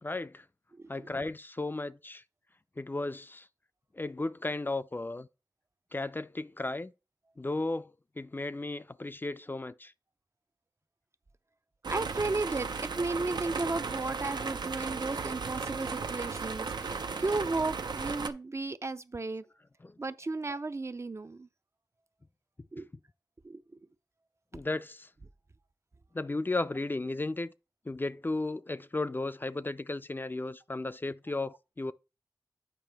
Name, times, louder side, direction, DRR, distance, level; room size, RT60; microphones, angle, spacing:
voice 1, 0.0-0.5 0.9-2.2 2.8-3.5 3.9-5.3 5.9-6.9 7.4-9.9 19.8-20.0 24.5-25.1 26.1-27.5 27.9-31.9, left 2 dB, 30° left, 0.4 m, -35 dB
sound 1, 11.8-18.3, right 5 dB, 90° right, 0.5 m, -35 dB
voice 2, 11.9-19.4 20.0-21.5 22.7-22.9 23.4-23.6, right 3 dB, 40° right, 0.4 m, -34 dB
8.9 x 4.8 x 3.4 m
cardioid pair, 45°, 7 cm